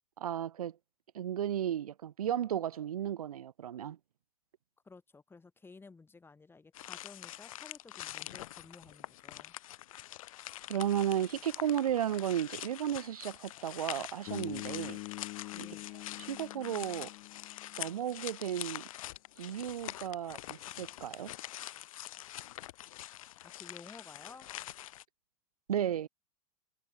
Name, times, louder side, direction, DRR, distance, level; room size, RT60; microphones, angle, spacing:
voice 1, 0.2-0.8 1.1-4.0 10.7-15.0 15.6-15.7 16.3-17.1 17.8-18.9 19.4-21.3 25.7-26.1, right 10 dB, 75° right, 0.8 m, -34 dB
voice 2, 4.8-9.5 15.5-15.9 23.4-24.5, left 4 dB, 10° left, 2.0 m, -54 dB
sound 1, 6.7-25.0, left 14 dB, 65° left, 1.2 m, -45 dB
Bass guitar, 14.3-18.4, left 28 dB, 40° left, 0.4 m, -45 dB
figure-of-eight pair, 95°, 19 cm